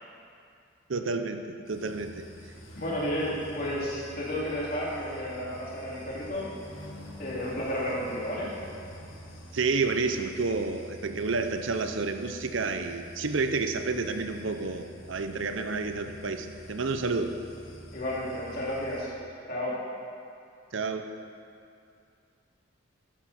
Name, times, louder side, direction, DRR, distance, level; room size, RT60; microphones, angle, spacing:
voice 1, 0.9-2.2 9.5-17.4 20.7-21.1, right 4 dB, 80° right, 7 dB, 0.7 m, -30 dB
sound 1, 1.7-19.1, equal, 85° left, 1.9 m, -47 dB
voice 2, 2.8-6.5 7.2-8.5 17.9-19.1 19.5-19.7, equal, 45° left, -6 dB, 2.9 m, -32 dB
12.5 x 10.0 x 4.3 m, 2.4 s
head